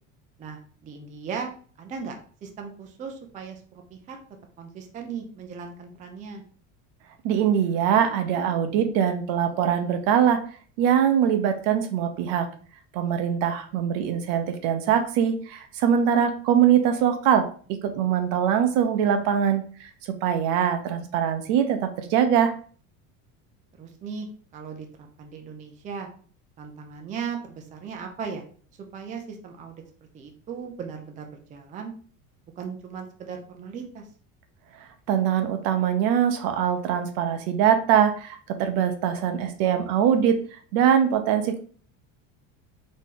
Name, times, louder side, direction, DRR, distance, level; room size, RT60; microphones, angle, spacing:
voice 1, 0.4-1.5 1.8-2.1 2.4-4.2 4.6-6.4 14.0-14.1 23.8-24.3 24.5-26.1 26.6-28.4 28.9-29.8 30.1-31.9 32.6-34.1, right 6 dB, 20° right, 3 dB, 0.5 m, -37 dB
voice 2, 7.2-10.4 10.8-12.5 12.9-17.5 17.8-22.5 35.1-40.4 40.7-41.6, right 9 dB, 65° right, 8 dB, 0.8 m, -22 dB
4.1 x 3.1 x 3.7 m, 0.44 s
cardioid pair, 160°, 39 cm